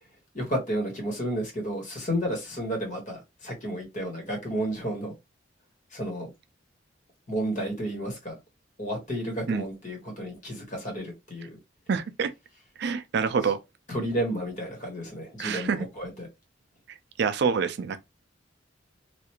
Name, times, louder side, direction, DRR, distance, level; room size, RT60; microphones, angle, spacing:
voice 1, 0.3-5.1 5.9-6.3 7.3-8.3 8.8-11.6 13.9-16.3, equal, 40° left, 1.4 m, -32 dB
voice 2, 11.9-12.3 12.8-13.6 15.4-15.9 17.2-18.0, right 5 dB, 60° right, 0.4 m, -26 dB
3.3 x 2.4 x 2.9 m
head